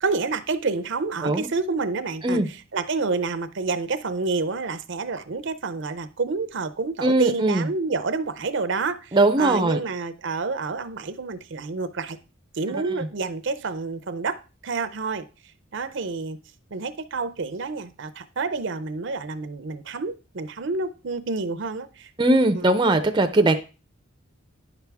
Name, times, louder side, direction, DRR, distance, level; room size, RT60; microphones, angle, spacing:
voice 1, 0.0-12.2 12.5-15.3 15.7-16.4 16.7-22.1 22.5-22.7, right 4 dB, 60° right, 0.7 m, -28 dB
voice 2, 7.0-7.7 9.1-9.8 22.2-23.6, right 2 dB, 20° right, 0.6 m, -20 dB
10.0 x 6.0 x 3.5 m
head